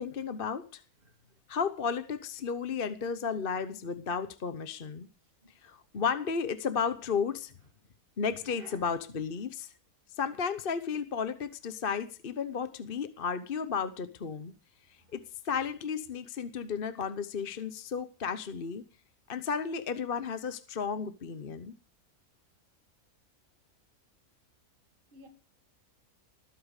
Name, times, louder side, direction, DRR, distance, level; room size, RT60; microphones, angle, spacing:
voice 1, 0.0-0.8 1.5-5.1 5.6-7.5 8.2-9.7 10.1-14.5 15.1-18.8 19.3-21.7, left 6 dB, 40° left, 1.0 m, -33 dB
voice 2, 1.0-1.4 5.2-5.5 5.9-6.0 8.4-8.9 9.3-9.4 15.0-15.1 25.1-25.3, right 2 dB, 35° right, 2.3 m, -56 dB
20.0 x 8.6 x 6.5 m
omnidirectional pair, 1.6 m